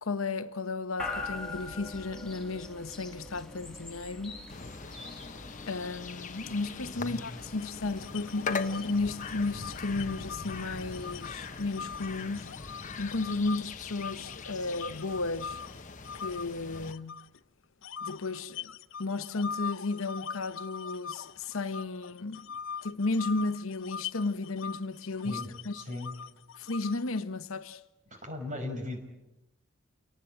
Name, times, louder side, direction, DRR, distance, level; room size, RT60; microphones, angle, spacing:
voice 1, 0.0-4.4 5.7-15.6 16.2-17.2 18.0-18.7 19.0-22.4 22.8-25.8 26.6-27.8, left 3 dB, 80° left, 1.1 m, -34 dB
sound 1, 1.0-14.0, left 3 dB, 5° left, 4.5 m, -45 dB
sound 2, 4.5-16.9, left 4 dB, 35° left, 1.2 m, -41 dB
sound 3, 7.6-13.6 14.0-17.4 17.8-27.2, left 7 dB, 65° left, 0.8 m, -42 dB
voice 2, 25.7-26.1 28.2-29.0, left 2 dB, 35° right, 5.4 m, -37 dB
29.5 x 18.5 x 8.8 m
head